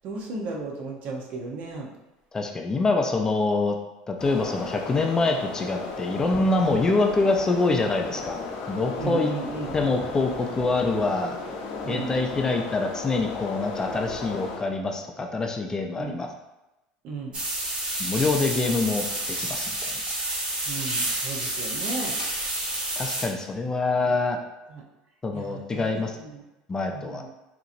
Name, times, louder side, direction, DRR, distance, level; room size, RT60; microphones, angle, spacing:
voice 1, 0.0-1.9 9.0-9.7 11.8-12.2 16.0-16.2 17.0-17.4 20.7-22.2 24.0-24.2 24.7-24.8 25.3-26.4 26.9-27.3, right 3 dB, 55° right, 0 dB, 0.8 m, -35 dB
voice 2, 2.3-3.8 4.1-8.4 8.7-9.3 9.7-11.4 11.9-16.3 18.0-19.9 23.0-24.4 25.2-26.2 26.7-27.2, left 3 dB, 20° left, 3 dB, 0.4 m, -25 dB
sound 1, 4.2-14.6, left 4 dB, 70° left, 0.7 m, -35 dB
sound 2, 17.3-23.3, right 1 dB, 35° right, 1.1 m, -29 dB
3.7 x 2.9 x 2.5 m, 0.99 s
supercardioid pair, 100°, 3 cm